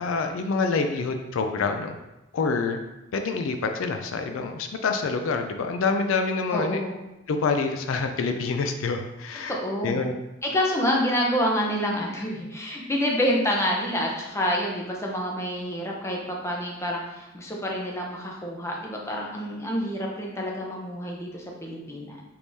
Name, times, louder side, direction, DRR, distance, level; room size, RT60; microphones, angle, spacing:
voice 1, 0.0-2.0 2.3-2.8 3.1-6.8 7.3-9.6 9.8-10.1, left 4 dB, 80° left, 6 dB, 0.4 m, -26 dB
voice 2, 6.5-7.0 9.5-10.0 10.4-22.2, equal, 15° left, -1 dB, 0.6 m, -28 dB
4.6 x 3.5 x 2.7 m, 0.97 s
head